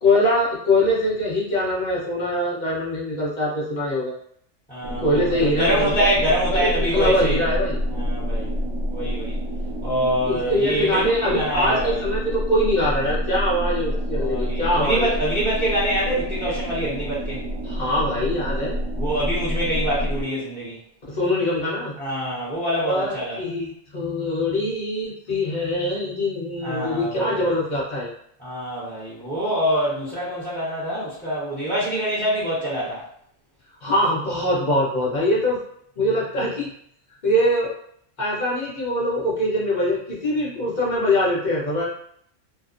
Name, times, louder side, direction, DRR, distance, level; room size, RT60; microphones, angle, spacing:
voice 1, 0.0-4.1 5.0-6.1 6.5-7.8 10.3-15.1 17.6-18.7 21.1-21.9 22.8-28.1 33.8-35.6 36.0-36.7 37.2-37.7 38.2-41.8, left 1 dB, 40° left, -6 dB, 0.9 m, -23 dB
voice 2, 4.7-7.4 7.9-8.5 8.9-9.4 9.8-12.0 14.1-17.4 19.0-20.8 22.0-23.4 26.6-27.5 28.4-33.0, right 1 dB, 10° left, -12 dB, 0.8 m, -25 dB
sound 1, 4.8-20.2, equal, 75° right, 1.2 m, -28 dB
2.8 x 2.0 x 2.5 m, 0.66 s
omnidirectional pair, 1.3 m